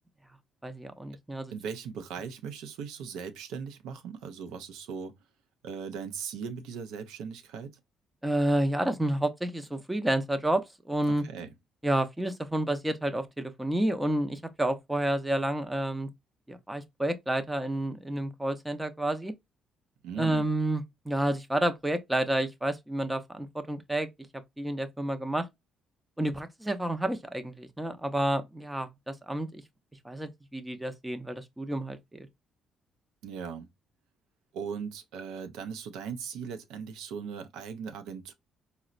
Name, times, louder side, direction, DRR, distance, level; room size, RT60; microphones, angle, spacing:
voice 1, 0.6-1.5 8.2-11.2 11.8-16.1 16.5-19.3 20.2-24.1 24.6-25.5 26.2-29.6 30.0-32.3, right 1 dB, 10° right, 0.5 m, -30 dB
voice 2, 1.5-5.1 5.6-7.8 11.1-11.5 20.0-20.4 33.2-33.7 34.5-38.3, right 6 dB, 90° right, 0.5 m, -38 dB
4.0 x 2.0 x 2.3 m
cardioid pair, 95°, 0 cm